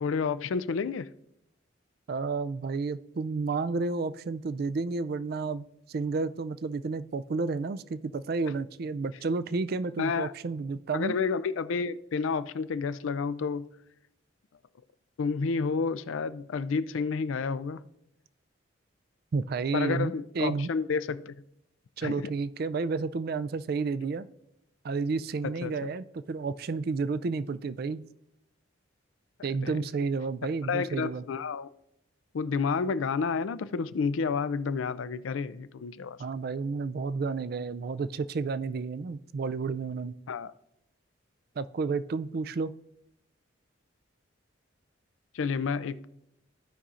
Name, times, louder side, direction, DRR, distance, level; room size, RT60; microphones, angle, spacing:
voice 1, 0.0-1.1 10.0-10.3 10.9-13.7 15.2-17.8 19.7-21.3 22.0-22.3 25.4-25.9 29.6-29.8 30.7-31.7 32.3-36.2 40.3-40.5 45.3-46.1, left 5 dB, 80° left, 0.4 m, -30 dB
voice 2, 2.1-11.1 19.3-20.7 22.0-24.3 24.8-28.0 29.4-31.2 36.2-40.1 41.6-42.7, right 4 dB, 50° right, 0.3 m, -31 dB
15.5 x 5.5 x 2.5 m
head